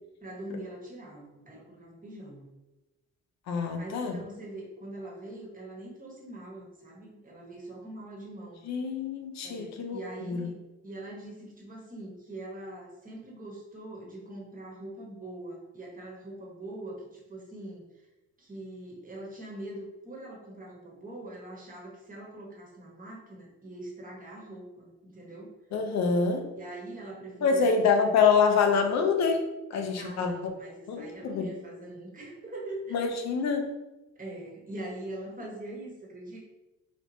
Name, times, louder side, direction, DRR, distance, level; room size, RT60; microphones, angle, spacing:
voice 1, 0.2-2.5 3.7-8.6 9.4-17.8 18.4-25.5 26.5-27.7 30.0-33.3 34.2-36.4, right 1 dB, 25° right, -3 dB, 1.2 m, -42 dB
voice 2, 3.5-4.2 8.7-10.5 25.7-26.5 27.4-30.5 30.9-31.5 32.9-33.7, left 5 dB, 60° left, 5 dB, 0.6 m, -26 dB
3.4 x 3.0 x 2.7 m, 1.0 s
cardioid pair, 90°, 30 cm